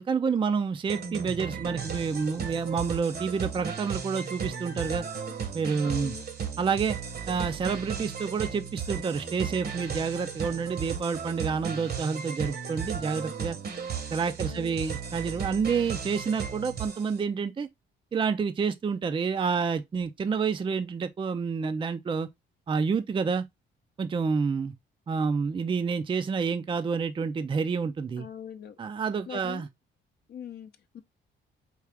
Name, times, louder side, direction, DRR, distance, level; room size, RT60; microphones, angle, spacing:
voice 1, 0.0-5.0 5.5-6.1 6.6-7.0 7.3-13.6 14.1-17.7 18.1-22.3 22.7-23.5 24.0-24.7 25.1-28.3 28.8-29.7, right 5 dB, 25° right, 0.4 m, -28 dB
sound 1, 0.9-17.2, right 7 dB, 50° right, 1.0 m, -35 dB
voice 2, 5.8-6.2 14.4-14.8 28.2-28.8 29.3-29.7 30.3-31.0, left 9 dB, 55° left, 0.6 m, -42 dB
4.7 x 2.4 x 3.3 m
cardioid pair, 90°, 20 cm